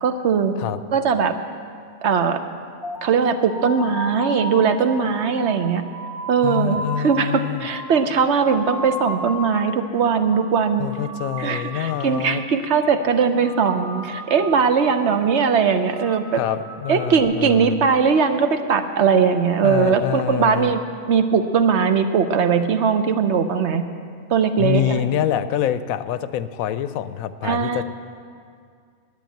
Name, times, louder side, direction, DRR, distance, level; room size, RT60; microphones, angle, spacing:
voice 1, 0.0-0.5 0.9-1.3 2.0-2.4 3.0-5.8 6.3-10.9 11.4-16.4 16.9-20.8 21.1-23.8 24.3-25.0 27.4-27.8, right 6 dB, 60° right, 8 dB, 0.9 m, -20 dB
sound 1, 2.8-9.8 10.1-10.6 10.8-12.3 12.6-13.0 13.3-14.8 15.1-15.5 15.8-17.2, equal, 45° right, 1.9 m, -34 dB
voice 2, 6.4-7.7 10.8-12.4 16.4-17.8 19.6-20.7 24.6-27.8, left 10 dB, 85° left, 13 dB, 1.0 m, -26 dB
10.5 x 9.5 x 9.0 m, 2.2 s
omnidirectional pair, 1.4 m